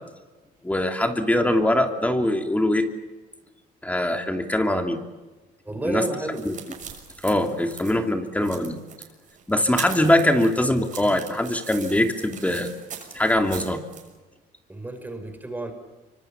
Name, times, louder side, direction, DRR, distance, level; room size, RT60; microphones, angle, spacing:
voice 1, 0.6-2.9 3.8-5.0 5.8-6.0 6.4-6.6 7.2-8.8 9.5-12.7 13.1-13.8, left 1 dB, 10° left, 5 dB, 2.8 m, -22 dB
voice 2, 5.7-6.4 14.7-15.7, right 2 dB, 10° right, 6 dB, 5.3 m, -30 dB
sound 1, 6.0-14.1, right 7 dB, 50° right, 6.5 m, -40 dB
27.0 x 25.0 x 7.2 m, 1.2 s
cardioid pair, 110°, 17 cm